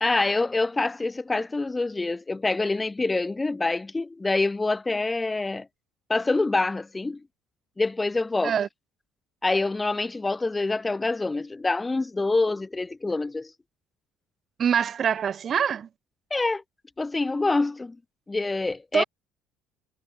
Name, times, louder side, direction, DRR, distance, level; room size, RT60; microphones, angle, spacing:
voice 1, 0.0-5.7 6.1-7.2 7.8-8.5 9.4-13.5 16.3-16.6 17.0-18.0 18.3-19.0, left 3 dB, 15° left, 0.4 m, -26 dB
voice 2, 14.6-15.9 18.9-19.0, right 8 dB, 40° right, 1.0 m, -24 dB
figure-of-eight pair, 55°, 0 cm